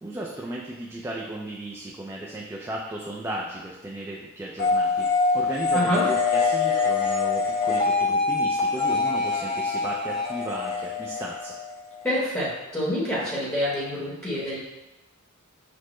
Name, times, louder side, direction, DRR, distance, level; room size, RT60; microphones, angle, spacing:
voice 1, 0.0-5.1 5.3-11.6, right 1 dB, 10° right, -3 dB, 0.3 m, -35 dB
sound 1, 4.6-12.1, left 4 dB, 45° left, 0.9 m, -24 dB
voice 2, 5.7-6.0 12.0-14.6, left 1 dB, 10° left, -9 dB, 1.0 m, -27 dB
6.0 x 2.1 x 3.1 m, 1.0 s
head